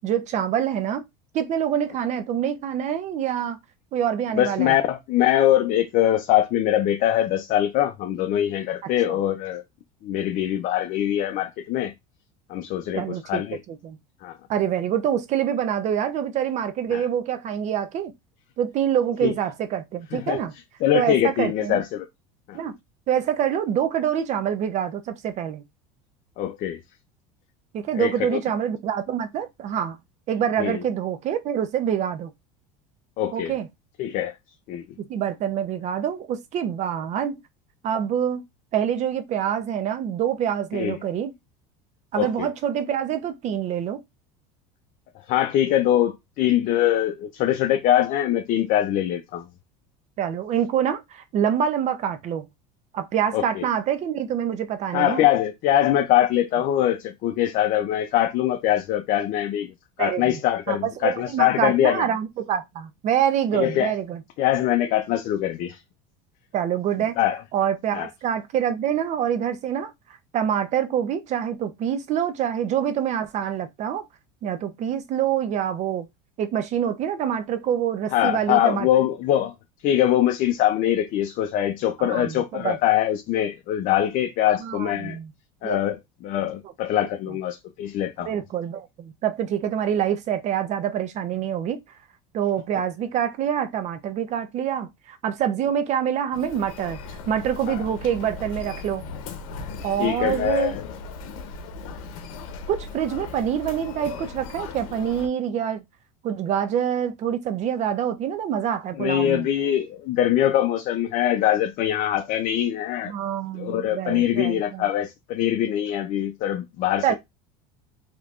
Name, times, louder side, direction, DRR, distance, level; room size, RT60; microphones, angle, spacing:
voice 1, 0.0-1.0 1.3-3.6 3.9-4.8 8.8-9.2 12.9-14.0 14.5-18.1 18.6-20.5 20.9-21.8 22.5-22.7 23.1-25.6 27.7-30.0 30.3-32.3 33.3-33.7 35.1-37.4 37.8-38.4 38.7-41.3 42.1-44.0 50.2-52.5 52.9-55.2 60.0-60.4 60.7-64.2 66.5-67.2 67.5-69.9 70.3-74.1 74.4-76.1 76.4-78.9 82.0-82.8 84.6-85.3 85.6-85.8 88.3-91.8 92.3-97.0 97.3-99.0 99.8-100.7 102.7-105.8 106.2-109.5 113.1-114.8 117.0-117.1, right 9 dB, 45° right, 0.6 m, -26 dB
voice 2, 4.3-9.6 10.0-11.9 12.5-13.6 14.2-14.4 16.9-17.0 19.2-19.3 20.1-20.4 20.8-22.1 22.5-22.6 26.4-26.8 27.9-28.1 30.6-30.8 33.2-33.5 34.0-34.4 34.7-34.8 40.7-41.0 42.1-42.5 45.3-49.5 53.3-53.7 54.9-62.1 63.5-63.9 64.4-65.8 67.2-67.4 67.9-68.1 78.1-79.5 79.8-85.2 85.6-86.0 86.2-88.4 97.7-97.8 100.0-100.8 109.0-113.1 113.5-117.1, left 12 dB, 50° left, 0.5 m, -23 dB
Human voice, 96.3-105.3, left 4 dB, 85° left, 0.8 m, -37 dB
3.3 x 2.9 x 2.4 m
supercardioid pair, 115°, 17 cm